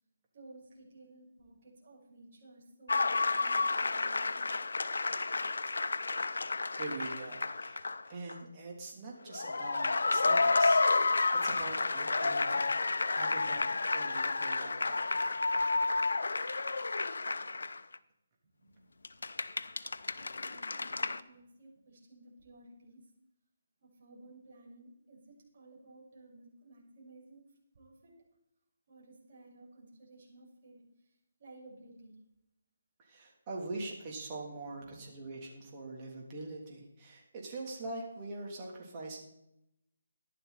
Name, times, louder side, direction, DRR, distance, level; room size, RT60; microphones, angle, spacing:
voice 1, 0.3-4.5 11.4-11.9 13.3-13.7 17.4-17.6 18.6-18.9 20.1-23.0 23.8-27.4 27.7-28.1 28.9-31.1 31.4-32.2 34.7-35.1, right 2 dB, 50° right, -2 dB, 5.8 m, -56 dB
sound 1, 2.9-8.0 8.3-8.4 9.3-18.0 19.0-21.2, left 3 dB, 85° left, 0.7 m, -31 dB
voice 2, 6.8-11.1 11.4-12.8 13.1-13.6 13.9-15.3 33.0-39.2, right 2 dB, 30° right, -2 dB, 3.3 m, -43 dB
14.0 x 11.0 x 4.3 m, 0.81 s
hypercardioid pair, 160°, 0 cm